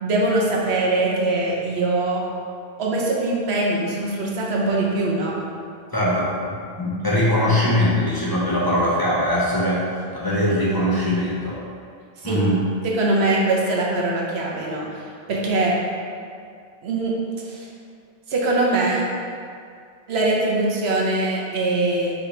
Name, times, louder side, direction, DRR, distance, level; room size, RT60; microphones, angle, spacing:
voice 1, 0.0-2.2 2.8-5.4 12.2-12.4 12.8-15.8 16.8-17.1 17.4-17.7 18.3-19.0 20.1-22.1, right 2 dB, 85° right, -3 dB, 1.0 m, -22 dB
voice 2, 5.9-11.6 12.2-12.7, left 1 dB, 25° left, -7 dB, 0.7 m, -21 dB
5.6 x 3.0 x 3.2 m, 2.3 s
omnidirectional pair, 1.1 m